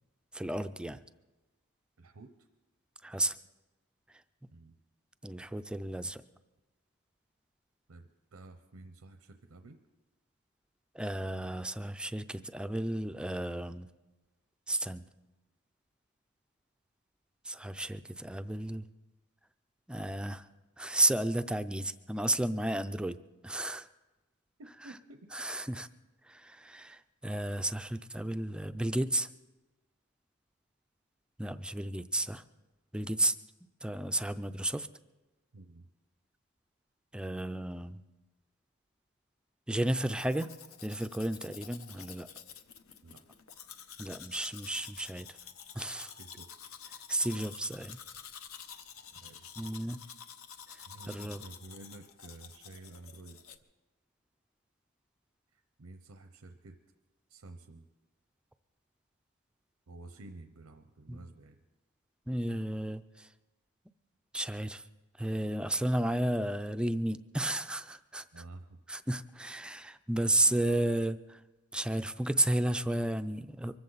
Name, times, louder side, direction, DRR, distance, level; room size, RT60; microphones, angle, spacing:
voice 1, 0.3-1.0 3.0-3.4 5.2-6.2 10.9-13.9 14.7-15.0 17.4-18.8 19.9-20.5 20.8-23.2 23.4-23.9 25.3-25.9 26.3-29.3 31.4-32.4 32.9-33.3 33.8-34.9 37.1-38.0 39.7-40.5 40.8-42.3 44.0-45.3 45.7-46.1 47.1-48.0 49.6-50.0 50.7-51.4 61.1-61.2 62.3-63.3 64.3-64.8 65.2-68.2 68.9-71.4 71.7-73.8, right 1 dB, 5° right, 10 dB, 0.4 m, -32 dB
voice 2, 2.0-2.5 4.5-4.8 7.9-9.8 24.6-25.3 35.5-35.9 43.0-43.2 46.2-46.5 49.2-49.7 50.7-53.6 55.5-56.8 57.3-57.8 59.9-61.6 68.3-68.8, right 2 dB, 90° right, 7 dB, 0.8 m, -51 dB
Domestic sounds home sounds, 40.0-53.6, left 8 dB, 70° left, 0.9 m, -49 dB
24.0 x 14.0 x 4.0 m, 1.1 s
head